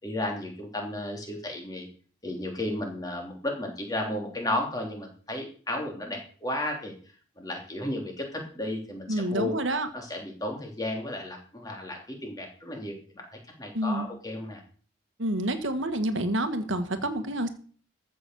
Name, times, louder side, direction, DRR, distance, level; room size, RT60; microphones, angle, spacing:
voice 1, 0.0-1.9 2.2-6.9 7.4-9.6 9.9-13.3 13.6-14.6, left 1 dB, 20° left, 1 dB, 3.3 m, -33 dB
voice 2, 9.1-9.9 13.7-14.1 15.2-17.5, right 1 dB, 80° right, 8 dB, 1.8 m, -28 dB
14.0 x 6.5 x 7.0 m, 0.41 s
head